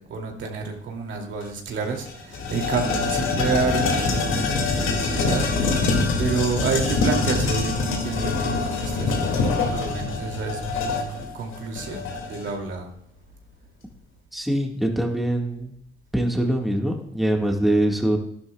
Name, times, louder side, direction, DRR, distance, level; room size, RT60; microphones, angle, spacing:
voice 1, 0.1-5.4 6.2-12.9, right 4 dB, 70° right, 1 dB, 2.5 m, -29 dB
sound 1, 1.4-1.5 1.8-12.5, left 3 dB, 85° left, 2.2 m, -24 dB
voice 2, 14.3-15.7 16.1-18.2, right 1 dB, ahead, 1 dB, 1.6 m, -23 dB
12.5 x 11.0 x 2.3 m, 0.73 s
cardioid pair, 90°, 20 cm